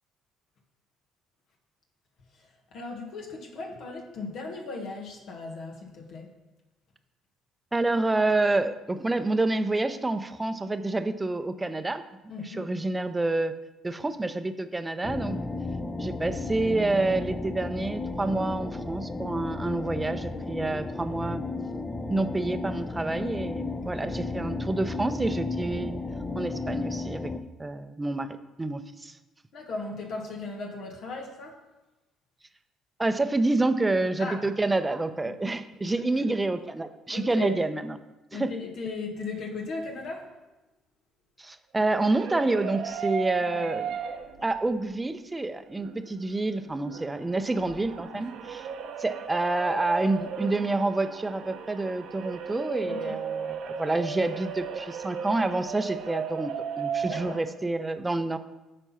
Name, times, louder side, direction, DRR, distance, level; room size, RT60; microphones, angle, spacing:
voice 1, 2.4-6.3 12.3-12.6 29.5-31.6 34.2-34.4 35.2-35.3 35.9-36.1 37.1-37.6 38.3-40.3 43.5-43.7 48.1-48.3 52.8-53.2 57.0-57.4, left 3 dB, 65° left, 1 dB, 1.6 m, -37 dB
voice 2, 7.7-12.0 12.4-13.5 13.8-15.4 16.0-21.4 22.1-25.9 26.3-27.3 27.6-29.1 33.0-38.0 38.3-38.5 41.4-43.9 44.4-48.6 49.0-58.4, right 2 dB, 20° right, 10 dB, 0.7 m, -28 dB
sound 1, 15.0-27.4, left 3 dB, 20° left, 0.8 m, -33 dB
sound 2, 41.9-44.6 45.0-45.1 45.7-57.4, right 7 dB, 65° right, 0.9 m, -36 dB
9.1 x 4.4 x 5.7 m, 1.0 s
hypercardioid pair, 55°, 0 cm